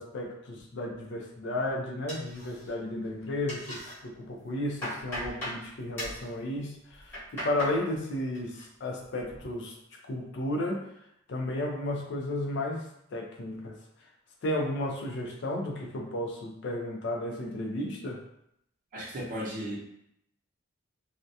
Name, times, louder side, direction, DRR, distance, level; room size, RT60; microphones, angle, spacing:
voice 1, 0.0-10.9 11.3-13.8 14.4-18.2, left 1 dB, 60° left, 1 dB, 0.4 m, -33 dB
sound 1, 2.1-2.9 3.2-3.9 4.4-5.6 6.0-6.2 6.9-7.8 8.1-8.6 9.0-9.5, equal, 10° left, 0.9 m, -38 dB
voice 2, 18.9-19.8, equal, 40° right, -5 dB, 0.7 m, -35 dB
2.3 x 2.1 x 2.7 m, 0.76 s
head